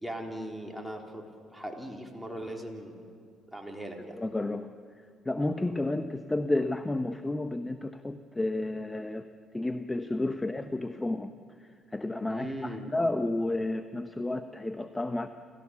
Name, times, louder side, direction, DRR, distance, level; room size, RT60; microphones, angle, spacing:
voice 1, 0.0-1.3 1.5-3.0 3.5-4.2 10.3-10.4 12.3-12.9, right 1 dB, ahead, 1 dB, 3.7 m, -39 dB
voice 2, 4.2-4.7 5.2-9.3 9.5-11.3 11.6-15.3, left 2 dB, 15° left, 9 dB, 0.9 m, -31 dB
29.0 x 14.5 x 7.0 m, 2.3 s
supercardioid pair, 75°, 0 cm